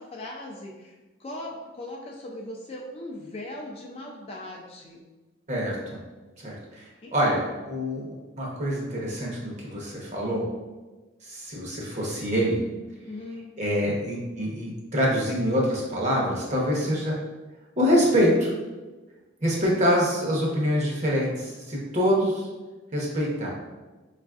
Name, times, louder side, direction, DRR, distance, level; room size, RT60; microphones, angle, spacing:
voice 1, 0.0-5.0 7.0-7.1 13.0-13.4, left 1 dB, 30° left, -1 dB, 0.4 m, -39 dB
voice 2, 5.5-6.0 6.4-8.1 8.4-10.5 11.2-12.6 13.6-17.1 17.8-18.5 19.4-22.5 22.9-23.5, equal, 35° right, -3 dB, 0.8 m, -25 dB
4.8 x 2.4 x 2.4 m, 1.2 s
head